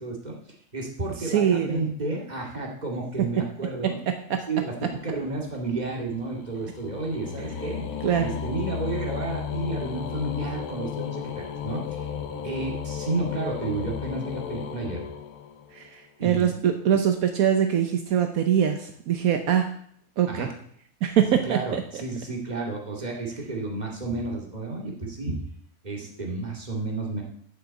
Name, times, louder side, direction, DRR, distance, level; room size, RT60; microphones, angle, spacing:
voice 1, 0.0-4.0 4.5-4.8 5.0-15.0 16.2-16.6 20.3-20.5 21.5-25.4 25.8-27.2, right 3 dB, 30° right, -1 dB, 2.3 m, -32 dB
voice 2, 1.2-1.8 4.3-4.4 8.0-8.3 15.7-19.7 20.2-20.5 21.0-21.8, right 9 dB, 75° right, 6 dB, 1.3 m, -23 dB
sound 1, 5.0-15.9, left 8 dB, 90° left, 1.3 m, -34 dB
8.0 x 6.2 x 8.2 m, 0.64 s
omnidirectional pair, 1.5 m